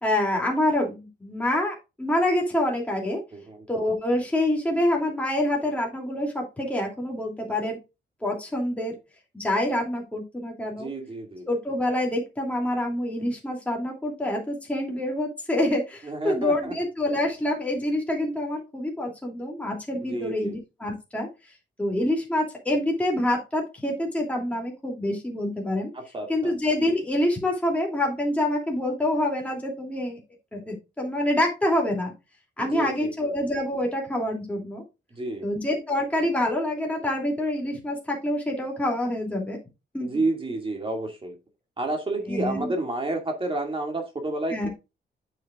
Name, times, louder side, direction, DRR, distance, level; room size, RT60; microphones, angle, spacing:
voice 1, 0.0-3.2 3.7-7.8 8.2-8.9 9.3-10.9 11.5-21.3 21.8-25.9 26.3-30.2 30.5-32.1 32.6-34.8 35.4-39.6 39.9-40.2 42.3-42.7 44.5-44.7, left 1 dB, 5° left, -1 dB, 2.7 m, -26 dB
voice 2, 3.3-3.7 10.8-11.5 16.0-16.7 20.0-20.5 25.9-26.5 32.6-33.3 35.2-35.5 40.0-41.3 41.8-44.7, right 2 dB, 30° right, 3 dB, 2.2 m, -30 dB
9.0 x 7.1 x 2.4 m, 0.26 s
wide cardioid pair, 130°, 19 cm